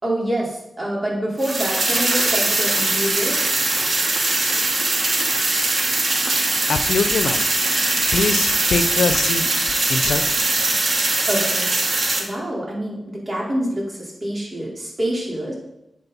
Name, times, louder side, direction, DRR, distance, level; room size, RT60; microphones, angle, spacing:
voice 1, 0.0-3.4 11.3-11.7 12.2-15.5, right 1 dB, 40° right, -4 dB, 4.4 m, -26 dB
sound 1, 1.4-12.2, right 2 dB, 60° right, 2.2 m, -21 dB
voice 2, 6.7-7.4 8.1-9.4 9.9-10.2, left 5 dB, 80° left, 10 dB, 0.7 m, -22 dB
11.0 x 7.6 x 4.2 m, 0.88 s
cardioid pair, 45°, 0 cm